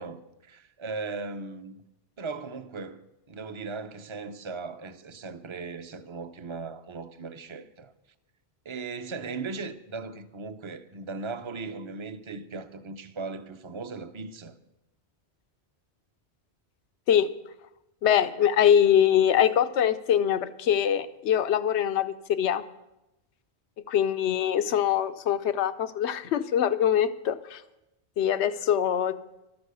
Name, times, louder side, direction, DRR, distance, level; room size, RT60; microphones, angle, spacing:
voice 1, 0.0-1.8 2.2-3.0 3.3-7.9 8.6-14.5, right 4 dB, 30° right, 0.6 m, -38 dB
voice 2, 18.0-22.6 23.9-27.6 28.2-29.2, left 9 dB, 90° left, 1.0 m, -23 dB
12.5 x 9.5 x 6.8 m
omnidirectional pair, 1.1 m